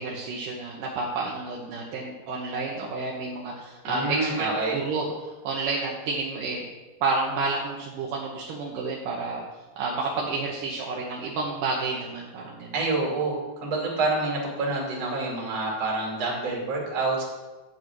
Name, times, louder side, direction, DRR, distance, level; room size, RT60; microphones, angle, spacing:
voice 1, 0.0-4.5 4.7-6.7 7.0-9.4 9.8-12.7, right 3 dB, 70° right, -2 dB, 2.1 m, -30 dB
voice 2, 3.8-4.8 12.7-17.2, right 3 dB, 40° right, -3 dB, 3.0 m, -27 dB
9.7 x 4.9 x 7.7 m, 1.3 s
omnidirectional pair, 4.9 m